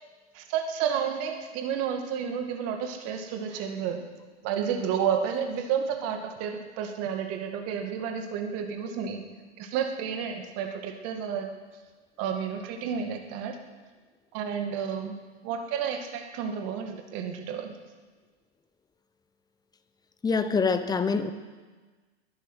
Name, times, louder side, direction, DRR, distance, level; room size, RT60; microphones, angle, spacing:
voice 1, 0.3-4.1 4.4-9.2 9.6-11.5 12.2-13.6 14.3-15.2 15.4-17.7, right 7 dB, 45° right, 5 dB, 2.1 m, -31 dB
voice 2, 20.2-21.3, left 5 dB, 10° left, 11 dB, 0.9 m, -25 dB
20.5 x 10.0 x 6.3 m, 1.4 s
hypercardioid pair, 105°, 35 cm